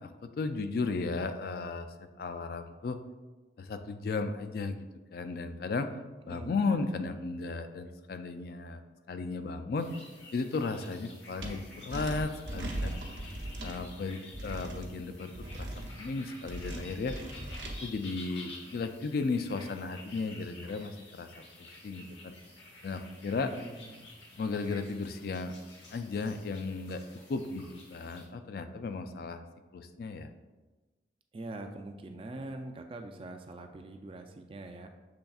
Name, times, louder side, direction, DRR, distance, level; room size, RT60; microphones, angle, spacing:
voice 1, 0.0-1.9 2.2-3.0 3.6-4.8 5.1-5.9 6.3-8.8 9.1-9.9 10.3-12.9 13.6-17.2 17.8-22.3 22.8-23.5 24.4-25.6 25.9-27.0 27.3-29.4 29.7-30.3, left 4 dB, 55° left, 9 dB, 0.3 m, -35 dB
voice 2, 6.3-6.6 23.3-24.1 31.3-34.9, right 2 dB, 30° right, 5 dB, 0.3 m, -43 dB
sound 1, 9.8-28.3, left 2 dB, 90° left, 1.0 m, -51 dB
sound 2, 11.4-11.5 11.9-13.8 14.3-14.9 15.3-15.9 16.4-17.7, right 1 dB, 75° right, 0.8 m, -38 dB
6.7 x 3.4 x 2.3 m, 1.2 s
head